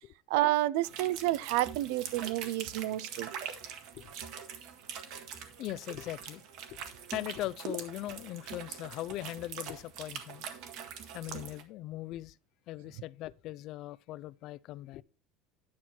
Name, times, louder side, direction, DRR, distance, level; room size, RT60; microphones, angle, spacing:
voice 1, 0.3-3.3, right 16 dB, 75° right, 0.5 m, -29 dB
sound 1, 0.8-11.6, right 7 dB, 55° right, 1.5 m, -43 dB
voice 2, 5.6-6.4 6.7-6.8 7.1-10.4 11.1-12.4 12.7-15.0, left 15 dB, 45° left, 0.4 m, -40 dB
10.5 x 6.1 x 4.3 m
cardioid pair, 165°, 0 cm